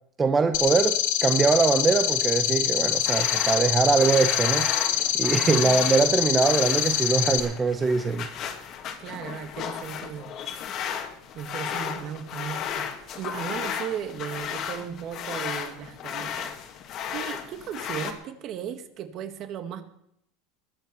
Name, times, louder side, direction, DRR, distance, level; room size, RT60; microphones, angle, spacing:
voice 1, 0.2-8.3, right 4 dB, 20° right, 0.8 m, -23 dB
sound 1, 0.5-7.4, left 11 dB, 75° left, 2.0 m, -25 dB
sound 2, 2.8-18.1, left 8 dB, 45° left, 1.8 m, -34 dB
voice 2, 5.4-5.8 9.0-10.3 11.3-16.5 17.1-19.8, right 9 dB, 45° right, 1.8 m, -36 dB
21.0 x 7.0 x 6.8 m
supercardioid pair, 135°, 0 cm